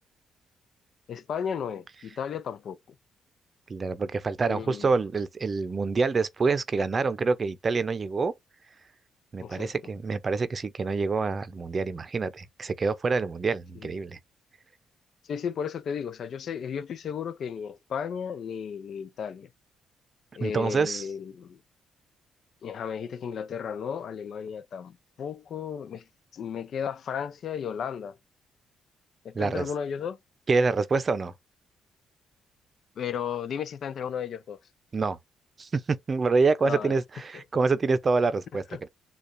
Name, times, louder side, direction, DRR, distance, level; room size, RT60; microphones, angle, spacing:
voice 1, 1.1-2.8 4.5-4.9 9.4-9.7 13.8-13.9 15.3-19.5 20.4-21.6 22.6-26.0 26.3-28.2 29.2-30.2 33.0-34.6 36.6-36.9 37.3-37.4, left 7 dB, 60° left, 0.5 m, -34 dB
voice 2, 3.7-8.3 9.3-14.2 20.4-21.1 29.3-29.7 30.5-31.3 34.9-35.2 35.6-38.9, right 4 dB, 35° right, 0.6 m, -26 dB
6.6 x 2.4 x 2.6 m
cardioid pair, 90°, 0 cm